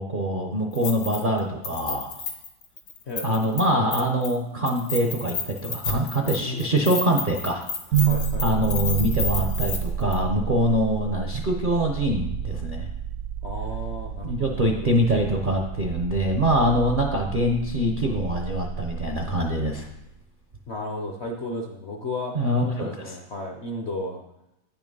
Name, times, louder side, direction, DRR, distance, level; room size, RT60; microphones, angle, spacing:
voice 1, 0.0-2.1 3.2-7.6 7.9-8.1 8.4-12.9 14.2-19.9 22.3-23.1, equal, 50° right, 0 dB, 0.6 m, -24 dB
Keys jangling, 0.8-1.4 1.6-3.6 3.9-4.4 4.7-9.8 10.1-10.2, left 5 dB, 80° left, 2.1 m, -31 dB
voice 2, 3.1-3.4 6.3-6.8 8.0-8.7 13.4-14.9 20.7-22.4 22.8-24.2, left 2 dB, 55° left, 2 dB, 0.7 m, -34 dB
sound 1, 7.9-20.0, right 8 dB, 80° right, 0.8 m, -30 dB
9.1 x 6.0 x 5.4 m, 0.90 s
omnidirectional pair, 2.1 m